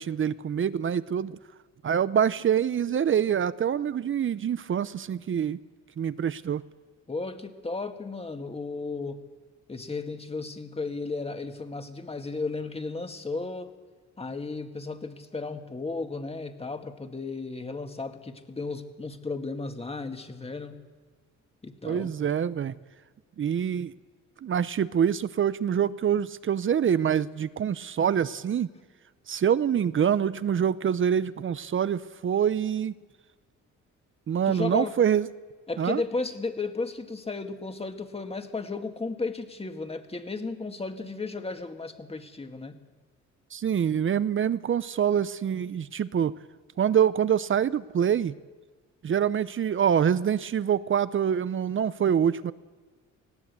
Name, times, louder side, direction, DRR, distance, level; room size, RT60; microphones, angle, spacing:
voice 1, 0.0-1.4 1.8-5.6 6.0-6.6 21.8-22.7 23.4-23.9 24.4-28.7 29.3-32.9 34.3-35.3 35.8-36.0 43.5-46.3 46.8-48.3 49.0-52.5, right 8 dB, 40° right, 16 dB, 0.7 m, -25 dB
voice 2, 7.1-9.2 9.7-13.7 14.2-20.8 21.6-22.1 34.5-34.9 35.7-42.8, left 3 dB, 20° left, 6 dB, 1.9 m, -34 dB
19.5 x 16.5 x 8.2 m, 1.4 s
cardioid pair, 90°, 30 cm